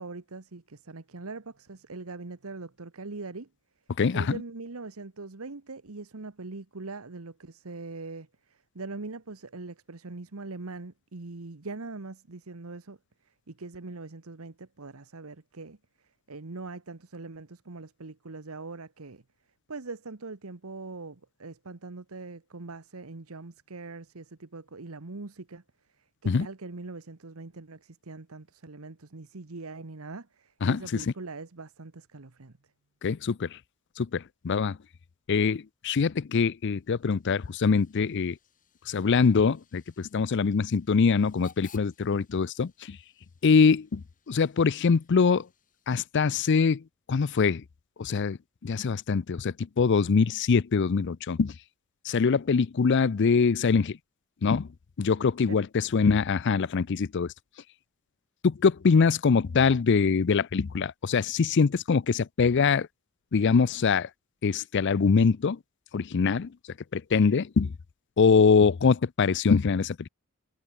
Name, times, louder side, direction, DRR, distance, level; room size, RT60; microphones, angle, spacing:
voice 1, 0.0-3.5 4.1-13.0 13.5-15.8 16.3-19.2 19.7-25.6 26.2-32.5 55.5-55.6, right 3 dB, 85° right, 1.2 m, -42 dB
voice 2, 33.0-33.6 34.0-34.8 35.3-38.4 38.9-43.0 43.4-45.5 45.9-46.8 47.1-47.6 48.0-48.4 48.6-51.5 52.0-54.0 54.4-54.7 55.0-57.3 58.4-62.9 63.3-64.1 64.4-65.6 65.9-66.5 66.9-67.7 68.2-70.0, left 5 dB, 55° left, 0.5 m, -23 dB
Hiss / Train / Alarm, 36.7-46.3, left 6 dB, 40° left, 6.4 m, -60 dB
head